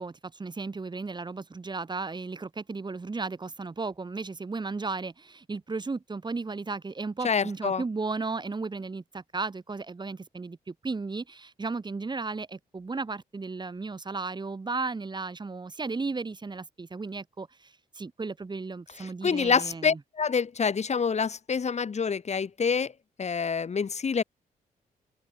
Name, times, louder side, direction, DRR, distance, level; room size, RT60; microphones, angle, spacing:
voice 1, 0.0-20.0, right 3 dB, 30° right, 3.2 m, -35 dB
voice 2, 7.2-7.8 19.0-22.9 23.2-24.2, left 6 dB, 45° left, 4.6 m, -27 dB
open air
cardioid pair, 100°, 15 cm